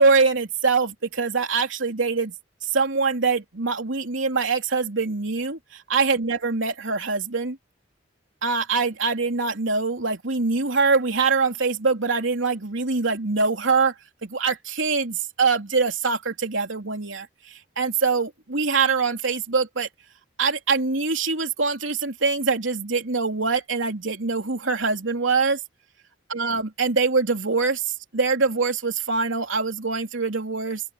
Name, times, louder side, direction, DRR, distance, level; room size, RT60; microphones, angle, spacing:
voice 1, 0.0-2.3 2.6-7.6 8.4-13.9 14.2-19.9 20.4-25.6 26.3-30.8, right 4 dB, 80° right, 3.2 m, -24 dB
open air
head